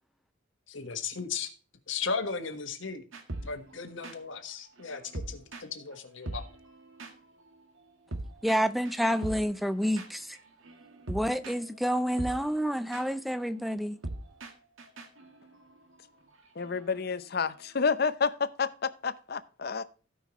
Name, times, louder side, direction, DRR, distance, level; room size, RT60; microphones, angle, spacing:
voice 1, 0.7-1.5 1.9-3.0 3.4-6.4, left 5 dB, 75° left, 1.5 m, -36 dB
sound 1, 3.1-6.0 6.2-17.9, right 2 dB, 85° right, 1.6 m, -43 dB
voice 2, 8.4-10.4 11.1-14.0, equal, ahead, 0.5 m, -29 dB
voice 3, 16.6-19.8, left 5 dB, 50° left, 0.6 m, -30 dB
16.0 x 5.6 x 3.1 m
head